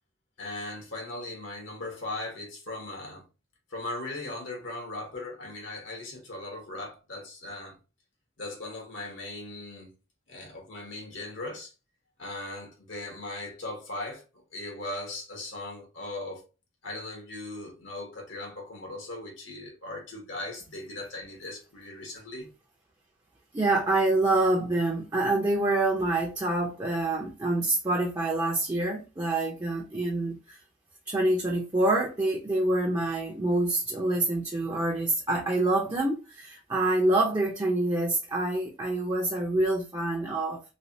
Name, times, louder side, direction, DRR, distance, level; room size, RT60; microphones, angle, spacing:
voice 1, 0.4-3.2 3.7-7.8 8.4-9.9 10.3-11.7 12.2-16.4 16.8-22.5, left 2 dB, 75° left, 1.3 m, -38 dB
voice 2, 23.5-30.6 31.1-40.6, right 2 dB, 20° right, 0.6 m, -26 dB
3.2 x 2.9 x 2.7 m
head